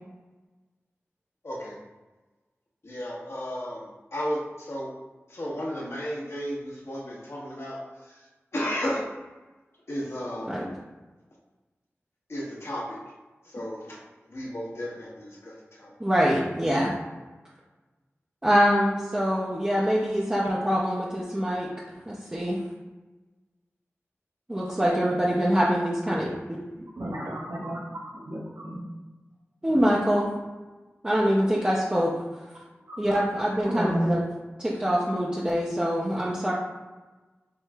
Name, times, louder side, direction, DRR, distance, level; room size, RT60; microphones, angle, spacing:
voice 1, 1.4-1.8 2.8-4.9 5.3-9.1 9.9-10.6 12.3-13.0 13.4-15.9, equal, 65° left, -4 dB, 1.1 m, -34 dB
voice 2, 16.0-16.9 18.4-21.7 22.1-22.6 24.5-26.3 29.6-30.3 31.0-32.1 33.0-34.2 34.6-36.5, equal, 20° right, -6 dB, 0.6 m, -24 dB
voice 3, 26.8-27.9 28.2-28.8 32.9-33.0 33.6-34.0, equal, 80° right, -5 dB, 1.2 m, -32 dB
4.7 x 3.0 x 2.3 m, 1.2 s
wide cardioid pair, 45°, 5 cm